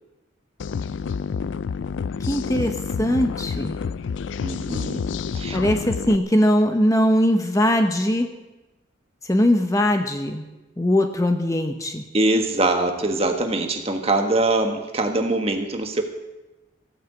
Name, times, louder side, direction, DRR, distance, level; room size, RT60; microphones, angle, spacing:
sound 1, 0.6-6.2, left 6 dB, 75° left, 0.4 m, -28 dB
voice 1, 2.2-3.8 5.5-8.3 9.2-10.5 10.8-12.0, left 1 dB, 15° left, 6 dB, 0.9 m, -21 dB
voice 2, 4.4-5.0 5.3-5.6 12.1-16.0, right 2 dB, 30° right, 5 dB, 1.4 m, -23 dB
15.5 x 8.8 x 8.2 m, 1.0 s
head